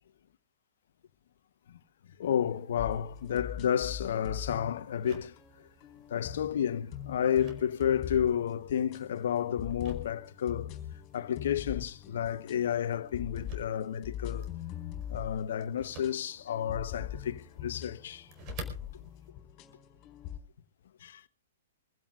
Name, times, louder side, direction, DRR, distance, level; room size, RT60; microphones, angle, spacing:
voice 1, 2.2-5.7 6.1-10.7 11.1-14.5 15.1-18.3 21.0-21.2, left 9 dB, 65° left, 1.1 m, -31 dB
sound 1, 2.2-19.3, right 3 dB, 35° right, 4.6 m, -54 dB
sound 2, 2.8-20.4, left 10 dB, 35° left, 4.2 m, -43 dB
25.0 x 16.0 x 2.5 m
hypercardioid pair, 115°, 0 cm